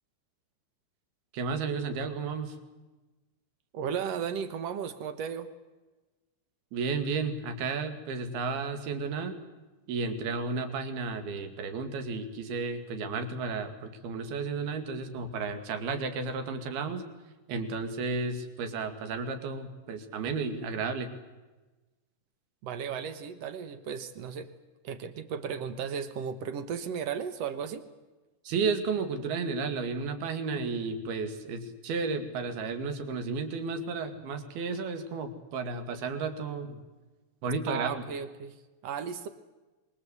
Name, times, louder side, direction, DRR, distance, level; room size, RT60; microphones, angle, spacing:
voice 1, 1.3-2.6 6.7-9.4 9.9-17.0 17.5-21.2 28.5-36.8 37.4-38.0, right 4 dB, 70° right, 7 dB, 4.1 m, -33 dB
voice 2, 3.7-5.5 22.6-24.5 24.8-27.8 37.7-38.6 38.8-39.3, right 7 dB, 85° right, 11 dB, 1.4 m, -35 dB
26.0 x 23.5 x 8.1 m, 1.2 s
omnidirectional pair, 4.8 m